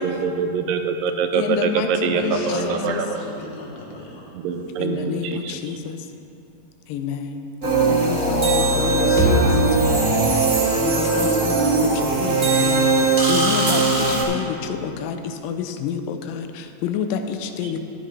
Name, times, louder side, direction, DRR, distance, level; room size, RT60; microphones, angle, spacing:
voice 1, 0.0-3.1 4.3-5.5, right 6 dB, 90° right, 6 dB, 2.4 m, -24 dB
voice 2, 1.3-3.0 4.8-6.0 6.9-7.5 7.9-10.3 10.8-17.8, left 7 dB, 85° left, 7 dB, 2.3 m, -29 dB
voice 3, 2.1-4.3, left 1 dB, 65° left, -3 dB, 2.7 m, -32 dB
sound 1, 7.6-14.2, right 3 dB, 35° right, 1.6 m, -19 dB
12.5 x 10.0 x 3.3 m, 2.6 s
omnidirectional pair, 3.9 m